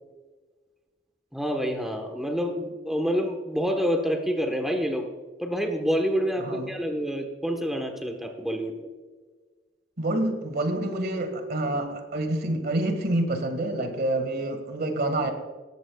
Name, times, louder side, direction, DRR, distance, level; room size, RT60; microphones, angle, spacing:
voice 1, 1.3-5.1 5.4-8.9, equal, ahead, 3 dB, 1.2 m, -27 dB
voice 2, 10.0-15.3, right 1 dB, 55° right, 6 dB, 1.8 m, -27 dB
18.5 x 14.5 x 2.4 m, 1.4 s
head